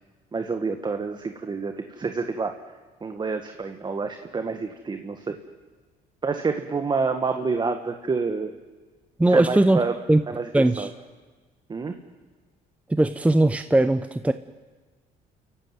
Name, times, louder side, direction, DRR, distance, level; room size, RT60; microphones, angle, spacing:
voice 1, 0.3-2.5 3.0-5.4 6.2-8.5 9.3-9.9 10.3-10.9 11.7-11.9, right 4 dB, 25° right, 7 dB, 1.5 m, -28 dB
voice 2, 9.2-9.8 10.1-10.2 10.5-10.9 12.9-14.3, right 1 dB, 10° right, 11 dB, 0.7 m, -19 dB
29.0 x 14.5 x 9.5 m, 1.3 s
cardioid pair, 110°, 17 cm